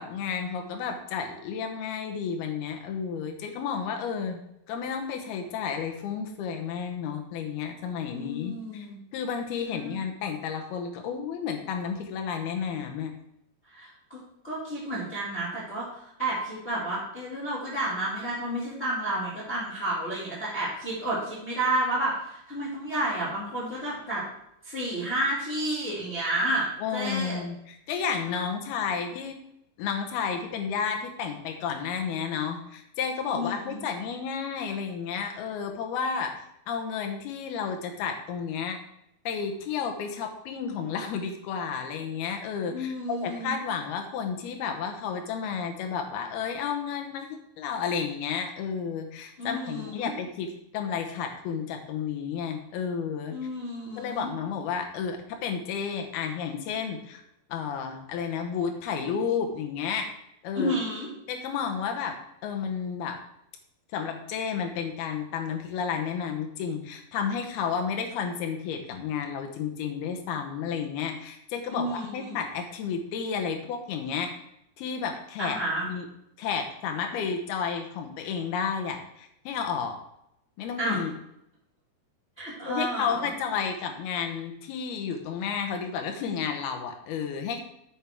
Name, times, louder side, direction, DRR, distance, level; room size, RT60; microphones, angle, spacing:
voice 1, 0.0-8.9 9.1-13.1 26.8-29.4 29.8-38.8 39.3-47.3 47.6-50.5 50.7-53.4 54.0-57.2 57.5-60.1 60.4-60.7 61.3-62.2 62.4-63.2 63.9-74.3 74.8-76.1 76.4-80.0 80.6-81.1 82.6-87.6, left 6 dB, 85° left, 4 dB, 3.0 m, -32 dB
voice 2, 8.1-9.0 9.6-10.0 13.7-14.2 14.4-24.3 24.6-27.4 33.3-33.8 42.7-43.5 49.4-50.1 53.3-54.3 60.5-61.1 71.7-72.4 75.4-75.9 80.8-81.0 82.4-83.3, right 1 dB, 20° left, -8 dB, 2.1 m, -31 dB
9.0 x 7.4 x 3.5 m, 0.78 s
omnidirectional pair, 4.3 m